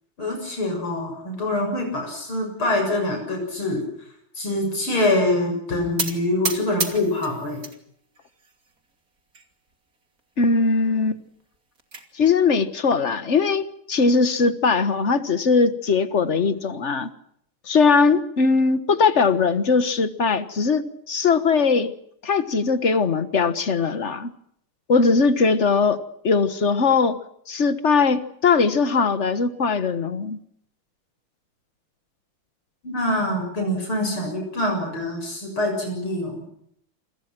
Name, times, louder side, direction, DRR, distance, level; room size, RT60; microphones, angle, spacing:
voice 1, 0.2-3.8 4.3-7.6 32.8-36.5, left 1 dB, 70° left, 2 dB, 8.1 m, -25 dB
sound 1, 6.0-7.8 8.1-8.8 9.3-9.4 9.7-9.8 10.2-10.3 11.4-12.0, right 4 dB, 40° right, 3.2 m, -30 dB
voice 2, 10.4-11.2 12.1-17.1 17.7-21.9 22.2-24.3 24.9-26.0 26.2-27.2 27.5-30.4, left 4 dB, 35° left, 12 dB, 1.6 m, -20 dB
28.5 x 25.0 x 6.2 m, 0.70 s
omnidirectional pair, 2.4 m